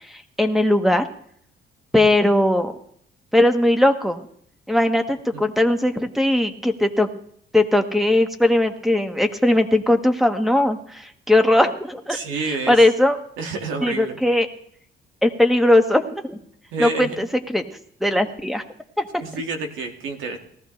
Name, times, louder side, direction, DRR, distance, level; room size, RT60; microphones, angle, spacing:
voice 1, 0.1-1.1 1.9-2.7 3.3-4.2 4.7-7.1 7.5-12.2 12.5-13.2 13.8-14.5 15.2-16.4 16.8-17.3 17.5-17.6 18.0-18.6, left 1 dB, ahead, 7 dB, 1.5 m, -19 dB
voice 2, 12.1-12.8 13.4-14.2 16.7-17.2 19.2-20.4, right 3 dB, 90° right, 4 dB, 2.2 m, -28 dB
19.0 x 14.0 x 3.3 m, 0.67 s
cardioid pair, 90°, 20 cm